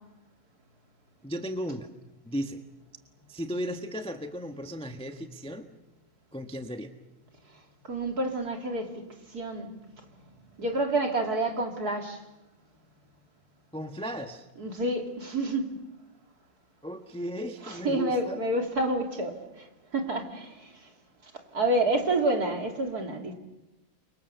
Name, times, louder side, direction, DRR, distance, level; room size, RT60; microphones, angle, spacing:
voice 1, 1.2-1.9 2.2-2.6 3.3-5.7 6.3-6.9 13.7-14.5 16.8-18.4, equal, 5° left, 6 dB, 1.1 m, -35 dB
voice 2, 7.8-9.0 9.3-9.7 10.6-12.2 14.6-15.8 17.7-19.6 19.9-20.7 21.5-23.3, right 2 dB, 45° right, 3 dB, 3.6 m, -28 dB
30.0 x 25.5 x 7.0 m, 0.99 s
omnidirectional pair, 2.3 m